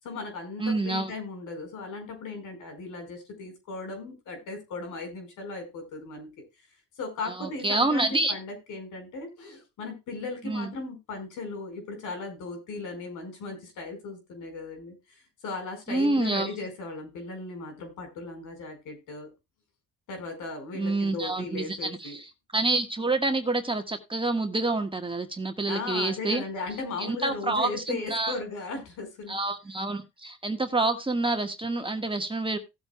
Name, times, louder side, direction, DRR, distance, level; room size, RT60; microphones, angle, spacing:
voice 1, 0.0-6.3 7.0-19.3 20.1-22.2 25.7-29.4, left 3 dB, 85° left, 5 dB, 4.7 m, -37 dB
voice 2, 0.6-1.1 7.3-8.4 10.4-10.7 15.9-16.5 20.7-26.4 27.0-28.3 29.3-32.6, right 2 dB, 15° right, 6 dB, 1.5 m, -28 dB
17.5 x 8.0 x 2.3 m, 0.23 s
cardioid pair, 90°, 30 cm